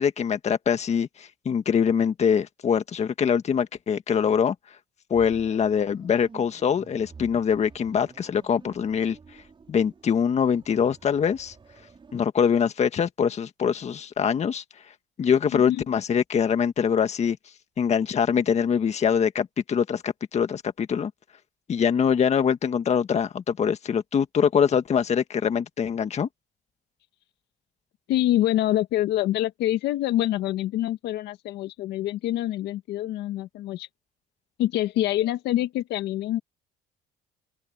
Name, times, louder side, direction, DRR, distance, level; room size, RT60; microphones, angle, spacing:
voice 1, 0.0-4.5 5.1-9.2 9.7-11.5 12.1-14.6 15.2-17.4 17.8-21.1 21.7-26.3, left 7 dB, 40° left, 1.6 m, -23 dB
sound 1, 5.1-12.3, right 5 dB, 30° right, 5.7 m, -51 dB
voice 2, 15.5-15.8 28.1-33.9 34.6-36.4, left 14 dB, 80° left, 1.8 m, -26 dB
open air
cardioid pair, 110°, 17 cm